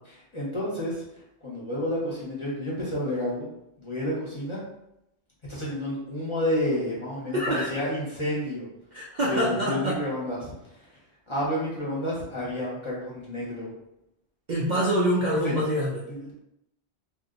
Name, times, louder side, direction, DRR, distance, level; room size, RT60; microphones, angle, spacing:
voice 1, 0.3-1.0 1.4-3.5 3.8-4.6 5.5-8.7 9.3-10.5 11.3-13.7 15.4-15.6 16.1-16.4, left 1 dB, 30° left, -6 dB, 0.9 m, -30 dB
voice 2, 7.3-7.7 8.9-10.0 14.5-16.1, equal, 55° right, -4 dB, 0.5 m, -25 dB
2.7 x 2.1 x 3.7 m, 0.84 s
omnidirectional pair, 1.1 m